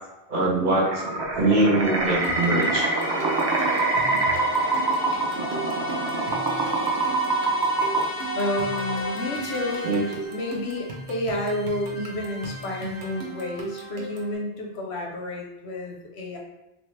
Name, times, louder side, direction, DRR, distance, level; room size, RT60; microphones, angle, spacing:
voice 1, 0.3-2.9 4.1-4.2 9.8-10.0, right 2 dB, 55° right, -2 dB, 0.8 m, -23 dB
sound 1, 0.8-9.3, right 2 dB, 35° right, 0.4 m, -25 dB
sound 2, 1.8-10.2, equal, 55° left, 0.6 m, -34 dB
sound 3, 2.1-14.4, right 3 dB, 85° right, 0.9 m, -38 dB
voice 2, 8.3-9.8 10.3-16.4, left 1 dB, 90° left, 0 dB, 0.9 m, -30 dB
3.2 x 2.1 x 3.1 m, 0.94 s
omnidirectional pair, 1.1 m